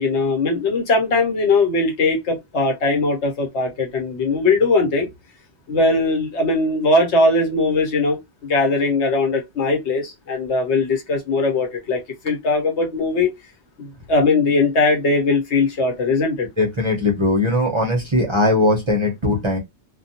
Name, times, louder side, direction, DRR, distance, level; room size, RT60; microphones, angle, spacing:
voice 1, 0.0-5.1 5.7-13.3 13.8-16.5, left 3 dB, 80° left, 1.2 m, -20 dB
voice 2, 16.6-19.6, left 2 dB, 30° right, 0.6 m, -19 dB
2.3 x 2.2 x 2.7 m
omnidirectional pair, 1.1 m